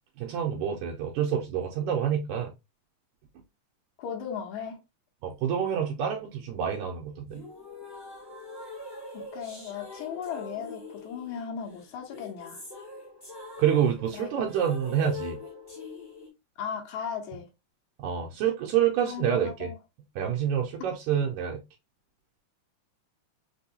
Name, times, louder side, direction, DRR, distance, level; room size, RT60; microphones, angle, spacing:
voice 1, 0.2-2.5 5.2-7.4 13.6-15.4 18.0-19.7 20.2-21.6, right 9 dB, 75° right, 1.9 m, -27 dB
voice 2, 4.0-4.8 9.1-12.6 14.1-14.3 16.6-17.5 19.0-19.8, left 7 dB, 70° left, 2.2 m, -37 dB
sound 1, 7.3-16.3, left 2 dB, 15° left, 0.9 m, -43 dB
5.3 x 2.3 x 2.7 m
omnidirectional pair, 3.8 m